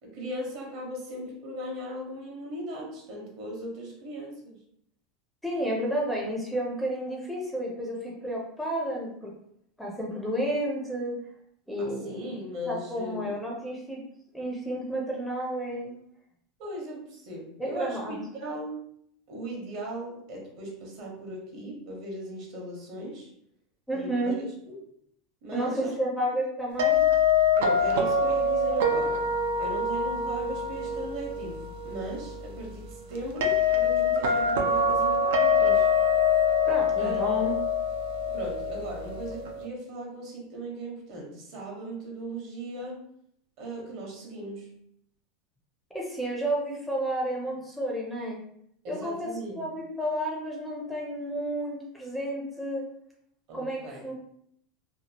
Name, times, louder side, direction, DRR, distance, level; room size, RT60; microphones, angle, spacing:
voice 1, 0.0-4.6 11.8-13.4 16.6-18.9 19.3-23.3 23.9-24.9 25.4-25.9 27.5-29.2 29.6-35.9 37.0-37.4 38.3-43.0 43.6-44.8 48.8-49.7 53.5-54.0, right 1 dB, 55° right, -1 dB, 1.0 m, -38 dB
voice 2, 5.4-9.3 9.8-11.2 11.7-12.4 12.7-14.0 14.3-15.9 17.6-18.2 23.9-24.4 25.5-27.0 36.7-37.5 45.9-48.4 48.9-52.8 53.5-54.1, right 1 dB, ahead, -3 dB, 0.5 m, -31 dB
sound 1, 26.8-39.7, left 4 dB, 90° right, 0.5 m, -25 dB
2.8 x 2.3 x 2.8 m, 0.70 s
supercardioid pair, 150°, 0 cm